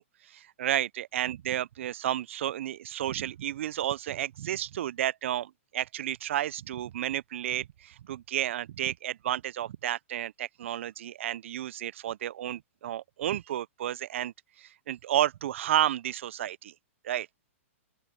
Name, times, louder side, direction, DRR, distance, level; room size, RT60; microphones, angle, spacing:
voice 1, 0.0-16.7 17.0-17.3, right 12 dB, 65° right, 0.4 m, -32 dB
open air
hypercardioid pair, 160°, 7 cm